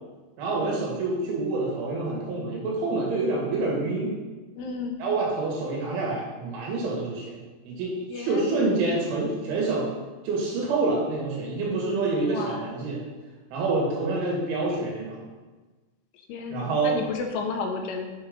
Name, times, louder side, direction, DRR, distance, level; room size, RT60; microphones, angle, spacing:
voice 1, 0.4-4.2 5.0-7.4 7.7-9.9 10.2-13.0 13.5-15.2 16.5-16.9, right 3 dB, 85° right, -3 dB, 4.5 m, -27 dB
voice 2, 4.6-5.0 8.1-8.7 12.2-12.7 16.3-18.1, left 4 dB, 75° left, 2 dB, 2.9 m, -32 dB
7.3 x 7.0 x 5.3 m, 1.2 s
omnidirectional pair, 5.3 m